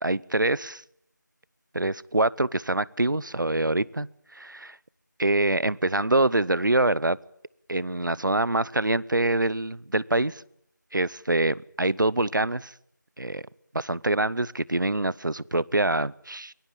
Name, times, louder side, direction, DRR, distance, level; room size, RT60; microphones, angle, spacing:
voice 1, 0.0-0.8 1.7-4.8 5.2-7.2 7.7-10.4 10.9-12.7 13.2-13.4 13.7-16.5, right 2 dB, 75° right, 23 dB, 0.8 m, -25 dB
23.5 x 17.5 x 8.9 m, 0.73 s
figure-of-eight pair, 175°, 10 cm